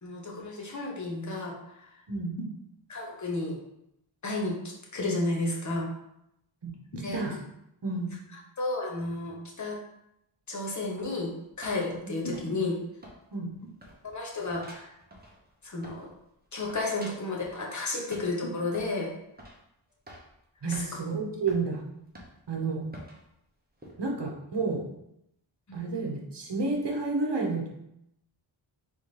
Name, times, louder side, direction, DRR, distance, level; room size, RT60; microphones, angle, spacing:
voice 1, 0.0-2.0 2.9-3.6 4.2-5.9 7.0-7.2 8.6-9.8 10.5-11.3 11.6-12.8 14.0-14.9 15.6-16.1 16.5-19.1 20.6-20.9 25.7-25.9, left 2 dB, 35° left, -2 dB, 1.0 m, -32 dB
sound 1, 11.0-12.8 13.0-13.5 13.8-16.2 16.5-17.6 18.1-19.0 19.4-19.6 19.9-20.4 20.7-20.9 21.5-21.6 22.1-22.6 22.9-23.2 23.8-24.0, equal, 20° right, 1.0 m, -49 dB
voice 2, 20.6-21.8 22.5-22.8 24.0-24.8 25.7-27.7, right 3 dB, 55° right, -1 dB, 1.1 m, -30 dB
4.1 x 3.5 x 3.3 m, 0.81 s
wide cardioid pair, 85°, 49 cm